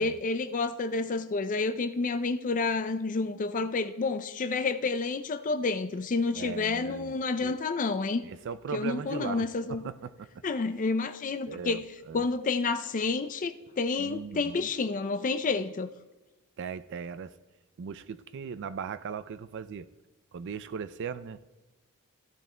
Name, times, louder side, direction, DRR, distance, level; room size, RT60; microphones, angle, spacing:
voice 1, 0.0-8.2 8.7-9.8 10.4-15.9, left 3 dB, 35° left, 0.4 m, -29 dB
voice 2, 6.3-7.6 8.2-10.3 11.5-12.2 14.0-14.7 16.6-17.3 17.8-19.9 20.3-21.4, right 6 dB, 55° right, 0.3 m, -38 dB
14.5 x 12.0 x 2.2 m
head